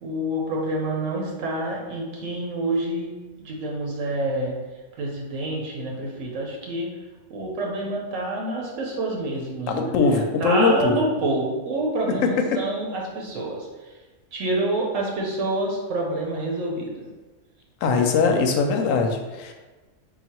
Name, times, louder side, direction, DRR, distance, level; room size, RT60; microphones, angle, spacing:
voice 1, 0.0-3.1 3.4-4.5 5.0-6.9 7.3-13.9 14.3-17.1, right 2 dB, 80° right, -1 dB, 1.1 m, -27 dB
voice 2, 9.7-11.0 12.2-12.3 17.8-19.5, left 4 dB, 85° left, 4 dB, 1.0 m, -21 dB
3.9 x 2.3 x 4.3 m, 1.2 s
omnidirectional pair, 1.3 m